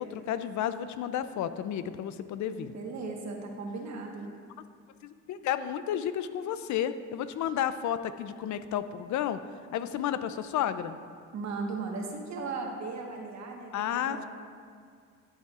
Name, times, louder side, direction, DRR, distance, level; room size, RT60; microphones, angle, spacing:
voice 1, 0.0-2.7 5.0-9.4 9.7-11.0 13.7-14.2, left 10 dB, 70° left, 12 dB, 0.5 m, -32 dB
voice 2, 2.5-4.3 11.3-14.2, right 4 dB, 65° right, 1 dB, 1.4 m, -37 dB
11.5 x 8.1 x 2.4 m, 2.1 s
cardioid pair, 90°, 30 cm